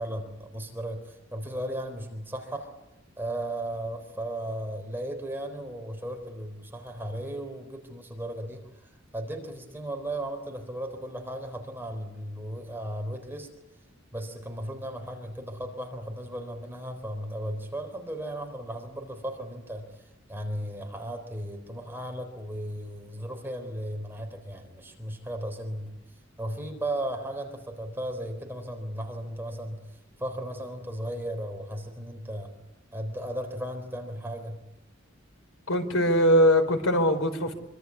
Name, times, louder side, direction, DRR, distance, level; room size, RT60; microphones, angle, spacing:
voice 1, 0.0-2.7 3.2-13.5 14.1-25.9 26.4-29.8 30.2-32.6 32.9-34.6, right 1 dB, 10° right, 4 dB, 3.9 m, -36 dB
voice 2, 35.7-37.5, equal, 80° left, 8 dB, 4.7 m, -21 dB
26.0 x 25.0 x 8.5 m, 0.88 s
head